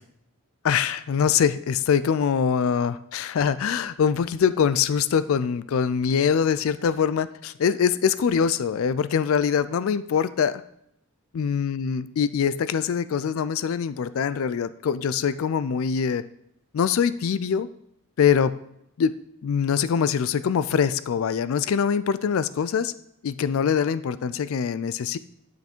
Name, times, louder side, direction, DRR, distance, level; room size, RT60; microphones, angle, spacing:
voice 1, 0.6-10.6 11.4-16.2 16.7-17.7 18.2-18.6 19.0-19.1 19.4-22.9 23.2-25.2, left 7 dB, 70° left, 15 dB, 0.3 m, -23 dB
9.3 x 5.6 x 4.5 m, 0.75 s
head